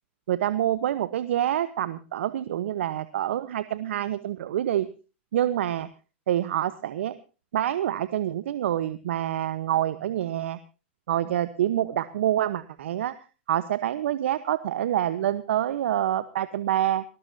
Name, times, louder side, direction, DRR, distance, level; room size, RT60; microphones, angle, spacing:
voice 1, 0.3-4.9 5.3-5.9 6.3-7.1 7.5-10.6 11.1-13.1 13.5-17.0, right 11 dB, 80° right, 13 dB, 1.0 m, -26 dB
20.0 x 19.5 x 2.7 m, 0.34 s
hypercardioid pair, 125°, 7 cm